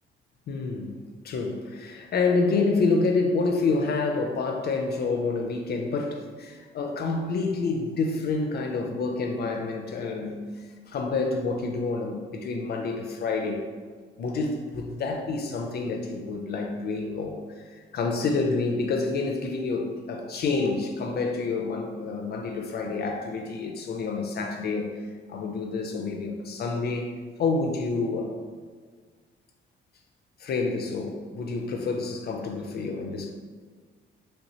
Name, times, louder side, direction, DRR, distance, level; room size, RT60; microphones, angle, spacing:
voice 1, 0.5-1.0 1.2-13.6 14.2-24.9 25.3-27.1 27.4-28.4 30.4-33.3, left 3 dB, 55° left, 3 dB, 0.4 m, -28 dB
3.1 x 3.0 x 2.7 m, 1.6 s
cardioid pair, 90°, 20 cm